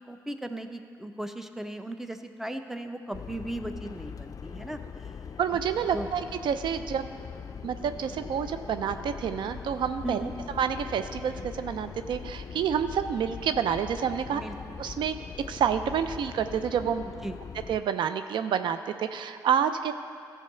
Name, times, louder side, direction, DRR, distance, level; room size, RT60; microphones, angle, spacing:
voice 1, 0.1-4.8 5.9-6.1 10.0-10.3 14.3-14.5 17.2-17.4, right 1 dB, 5° right, 8 dB, 0.7 m, -36 dB
sound 1, 3.1-17.8, left 6 dB, 45° left, 0.4 m, -41 dB
voice 2, 5.4-7.1 7.6-10.2 10.6-14.4 14.8-15.1 15.5-17.0 17.7-19.9, right 8 dB, 70° right, 10 dB, 0.4 m, -28 dB
13.5 x 4.6 x 6.8 m, 2.3 s
supercardioid pair, 55°, 8 cm